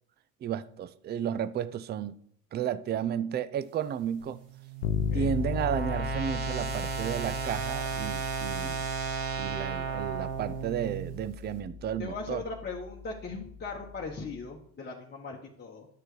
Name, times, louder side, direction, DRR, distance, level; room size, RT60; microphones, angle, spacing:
voice 1, 0.4-2.2 2.5-4.4 5.1-8.9 9.4-12.4, right 9 dB, 25° right, 0.4 m, -33 dB
sound 1, 4.2-11.3, right 7 dB, 65° right, 1.9 m, -35 dB
Bass guitar, 4.8-14.5, left 7 dB, 65° left, 0.7 m, -37 dB
voice 2, 12.0-15.9, left 4 dB, 25° left, 1.1 m, -39 dB
10.5 x 6.5 x 3.2 m
hypercardioid pair, 75°, 40 cm